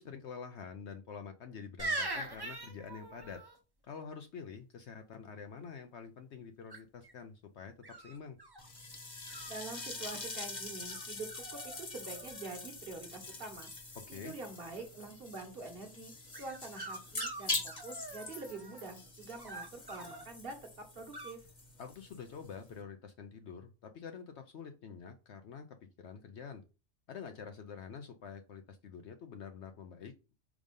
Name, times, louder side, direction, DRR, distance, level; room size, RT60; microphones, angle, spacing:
voice 1, 0.0-3.4 3.8-8.4 14.0-14.3 21.8-26.6 27.1-30.1, left 6 dB, 65° left, 7 dB, 0.8 m, -47 dB
sound 1, 1.8-3.6 6.7-7.1 7.8-8.7 9.3-10.2 10.9-11.0 11.3-11.8 12.0-12.7 16.3-18.9 19.4-20.2 21.1-21.3, right 2 dB, 20° right, 1.0 m, -42 dB
sound 2, 8.6-22.8, left 2 dB, 35° left, 1.3 m, -44 dB
voice 2, 9.5-13.7 14.1-21.4, right 3 dB, 45° right, 4 dB, 1.5 m, -46 dB
5.0 x 3.6 x 5.2 m, 0.32 s
omnidirectional pair, 1.4 m